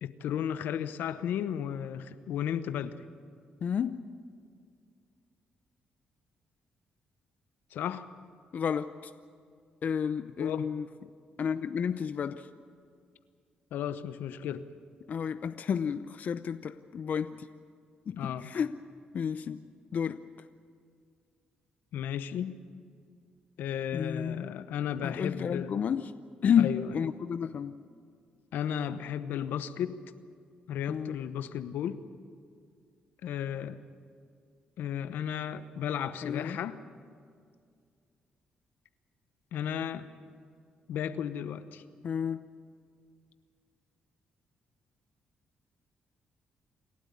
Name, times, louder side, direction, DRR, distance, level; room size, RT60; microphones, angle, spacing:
voice 1, 0.0-3.0 7.7-8.1 10.4-10.7 13.7-14.6 18.2-18.5 21.9-22.5 23.6-25.8 26.6-26.9 28.5-30.0 30.7-32.0 33.2-33.8 34.8-36.8 39.5-40.1 40.9-41.8, left 9 dB, 85° left, 12 dB, 0.9 m, -34 dB
voice 2, 3.6-4.0 8.5-9.1 9.8-10.9 11.4-12.5 15.1-17.5 18.1-18.7 19.1-19.6 19.9-20.2 23.9-24.4 25.0-26.1 26.4-27.7 30.9-31.2 36.2-36.6 42.0-42.5, left 7 dB, 55° left, 11 dB, 0.6 m, -31 dB
28.0 x 12.5 x 9.5 m, 2.2 s
cardioid pair, 85°, 3 cm